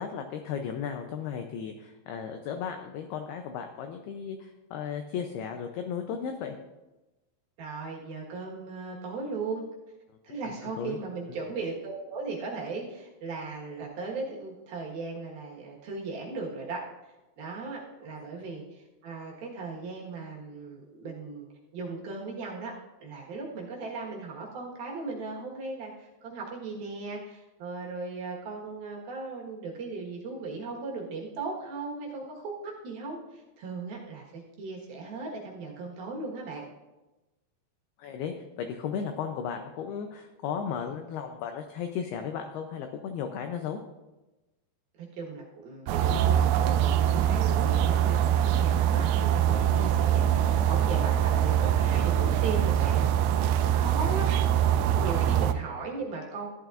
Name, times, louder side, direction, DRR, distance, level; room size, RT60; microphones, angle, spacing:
voice 1, 0.0-6.6 10.1-10.2 10.4-11.0 38.0-43.8, left 7 dB, 85° left, 5 dB, 2.2 m, -35 dB
voice 2, 7.6-9.7 10.2-16.8 17.4-21.4 21.7-36.6 45.0-48.2 48.6-53.1 53.6-54.3 55.0-56.5, right 3 dB, 60° right, -3 dB, 2.9 m, -37 dB
sound 1, 45.9-55.5, right 10 dB, 85° right, 2.5 m, -24 dB
15.0 x 11.0 x 2.5 m, 1.1 s
omnidirectional pair, 5.4 m